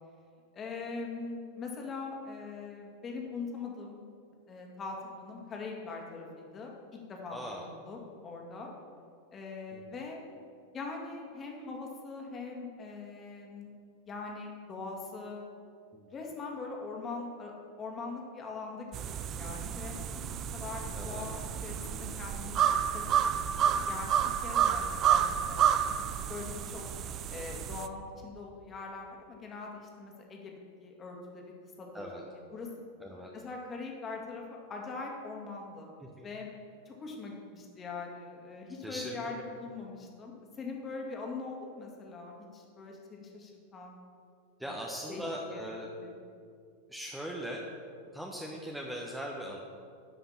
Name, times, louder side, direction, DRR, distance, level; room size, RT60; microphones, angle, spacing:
voice 1, 0.5-4.0 4.5-8.7 9.3-10.2 10.7-13.7 14.1-15.4 16.1-17.5 17.8-20.0 20.5-22.6 22.9-25.6 26.3-26.9 27.3-31.4 31.8-32.7 33.3-35.9 36.2-36.5 36.9-43.9 44.6-44.7 45.1-45.2 45.5-45.6, left 4 dB, 25° left, 0 dB, 2.1 m, -42 dB
voice 2, 7.3-7.7 9.7-9.8 15.9-16.1 20.9-21.3 25.9-26.2 31.9-32.2 33.0-33.3 36.0-36.3 38.8-39.4 44.6-45.9 46.9-47.7 48.1-49.6, equal, 5° right, -1 dB, 1.1 m, -40 dB
sound 1, 18.9-27.9, right 9 dB, 30° right, 0.5 m, -30 dB
11.5 x 5.8 x 7.2 m, 2.4 s
figure-of-eight pair, 90°, 0 cm